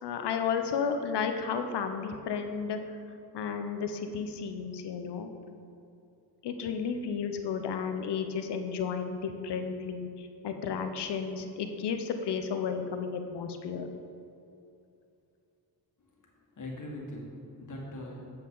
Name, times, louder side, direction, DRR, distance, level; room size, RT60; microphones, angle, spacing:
voice 1, 0.0-2.8 3.3-5.3 6.4-13.9, left 6 dB, 85° left, 7 dB, 0.8 m, -33 dB
voice 2, 16.2-18.3, left 1 dB, 50° left, -2 dB, 1.8 m, -41 dB
8.6 x 7.2 x 3.9 m, 2.6 s
cardioid pair, 95°, 40 cm